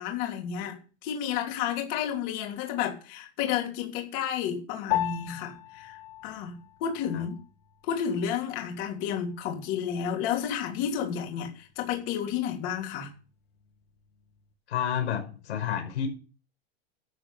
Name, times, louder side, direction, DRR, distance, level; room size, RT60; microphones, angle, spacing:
voice 1, 0.0-7.4 7.8-13.1, left 8 dB, 35° left, 2 dB, 3.2 m, -31 dB
Piano, 4.9-14.5, left 14 dB, 50° left, 2.1 m, -39 dB
voice 2, 14.7-16.1, left 9 dB, 80° left, 2 dB, 5.6 m, -30 dB
13.0 x 7.6 x 6.9 m, 0.36 s
supercardioid pair, 170°, 33 cm